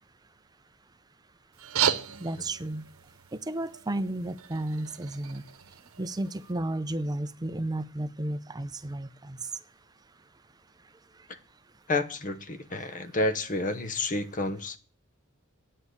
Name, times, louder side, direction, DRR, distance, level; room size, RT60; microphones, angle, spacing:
sound 1, 1.5-6.5, right 8 dB, 90° right, 0.9 m, -34 dB
voice 1, 2.2-2.8 3.3-5.4 6.0-9.4, right 1 dB, 20° right, 0.5 m, -33 dB
voice 2, 11.9-14.8, left 2 dB, 40° left, 1.0 m, -30 dB
9.4 x 7.7 x 8.2 m
head